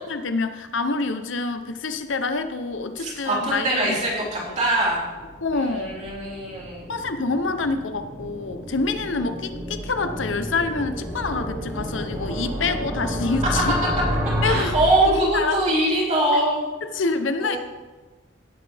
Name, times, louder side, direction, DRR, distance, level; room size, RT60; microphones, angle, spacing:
voice 1, 0.1-4.0 4.5-4.6 5.4-6.1 6.9-13.8 14.4-14.7 15.1-15.6 16.8-17.6, left 3 dB, 80° left, 9 dB, 0.8 m, -26 dB
sound 1, 2.7-15.7, equal, 15° right, 2.2 m, -31 dB
voice 2, 3.0-5.0 5.5-6.9 14.4-16.7 17.4-17.6, right 1 dB, 35° right, -5 dB, 3.3 m, -23 dB
17.5 x 7.7 x 3.4 m, 1.3 s
head